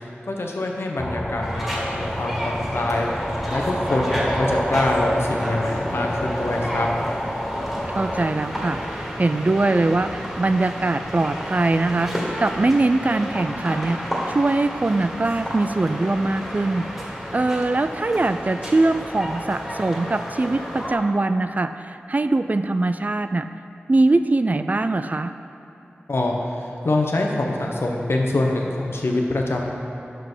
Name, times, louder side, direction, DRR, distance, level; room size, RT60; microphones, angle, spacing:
voice 1, 0.3-3.1 3.5-6.9 26.1-29.7, left 2 dB, 75° left, 0 dB, 0.9 m, -24 dB
sound 1, 1.0-8.2, equal, 20° left, 0.8 m, -29 dB
sound 2, 1.4-20.9, equal, 5° right, 1.9 m, -31 dB
voice 2, 7.9-16.9 17.3-23.5 23.9-25.3, right 2 dB, 40° right, 10 dB, 0.3 m, -22 dB
6.1 x 5.5 x 6.1 m, 2.9 s
cardioid pair, 45°, 4 cm